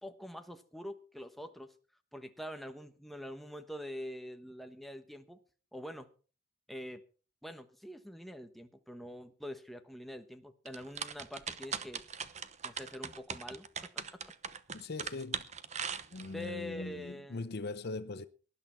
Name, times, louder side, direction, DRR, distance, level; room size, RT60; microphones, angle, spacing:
voice 1, 0.0-1.7 2.1-5.4 5.7-6.1 6.7-7.0 7.4-12.0 12.6-13.7 16.3-17.5, left 1 dB, ahead, 1.1 m, -45 dB
sound 1, 10.7-16.5, right 7 dB, 35° right, 0.9 m, -40 dB
voice 2, 14.7-15.5 16.1-18.3, left 3 dB, 50° left, 0.7 m, -40 dB
18.5 x 11.0 x 4.4 m
head